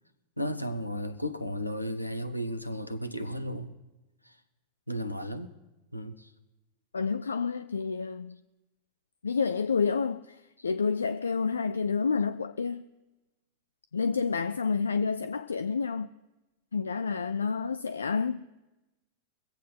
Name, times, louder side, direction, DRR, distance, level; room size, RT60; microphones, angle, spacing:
voice 1, 0.4-3.8 4.2-4.4 4.9-5.5 5.9-6.3, equal, 90° left, 0.8 m, -34 dB
voice 2, 6.9-8.4 9.2-12.8 13.9-16.1 16.7-18.5, left 5 dB, 75° left, 0.3 m, -29 dB
23.0 x 8.1 x 4.4 m
figure-of-eight pair, 90°, 0 cm